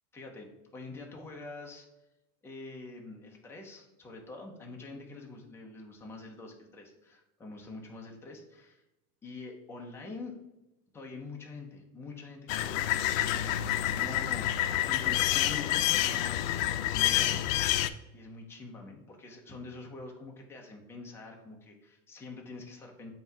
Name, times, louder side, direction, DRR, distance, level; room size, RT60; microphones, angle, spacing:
voice 1, 0.1-1.9 2.4-8.8 9.2-10.3 10.9-12.9 13.2-13.6 13.9-17.4 18.1-23.1, left 3 dB, 5° left, 0 dB, 0.5 m, -45 dB
sound 1, 12.5-17.9, left 13 dB, 85° left, 0.5 m, -28 dB
7.6 x 2.8 x 4.5 m, 0.94 s
supercardioid pair, 165°, 39 cm